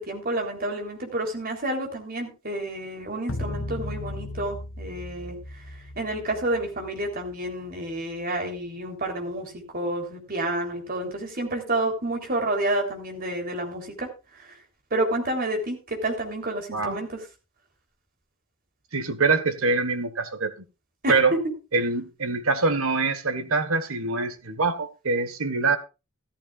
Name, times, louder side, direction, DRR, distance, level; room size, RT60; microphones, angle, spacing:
voice 1, 0.0-5.4 6.0-14.1 14.9-17.2 21.0-21.2, right 1 dB, 45° right, 3.7 m, -29 dB
sound 1, 3.3-7.7, left 1 dB, 65° left, 1.3 m, -36 dB
voice 2, 16.7-17.0 18.9-20.5 21.1-21.4 21.7-25.8, right 4 dB, 75° right, 1.6 m, -24 dB
14.0 x 14.0 x 2.5 m
head